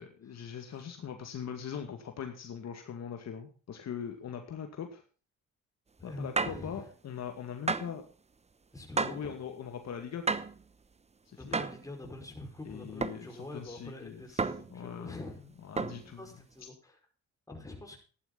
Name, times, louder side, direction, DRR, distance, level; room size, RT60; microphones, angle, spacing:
voice 1, 0.0-5.0 6.0-8.0 9.0-10.4 11.3-11.7 12.6-14.2 14.7-15.3 15.6-16.2, left 8 dB, 60° left, 5 dB, 2.2 m, -41 dB
voice 2, 6.0-6.9 8.7-9.3 11.3-15.4 16.1-17.0 17.5-18.0, left 1 dB, 10° left, 2 dB, 5.3 m, -45 dB
sound 1, 6.4-6.7 7.7-8.0 9.0-9.3 10.3-10.6 11.5-11.9 13.0-13.3 14.4-14.8 15.8-16.1, right 4 dB, 20° right, 0.9 m, -32 dB
14.0 x 11.0 x 4.0 m, 0.38 s
cardioid pair, 90°, 30 cm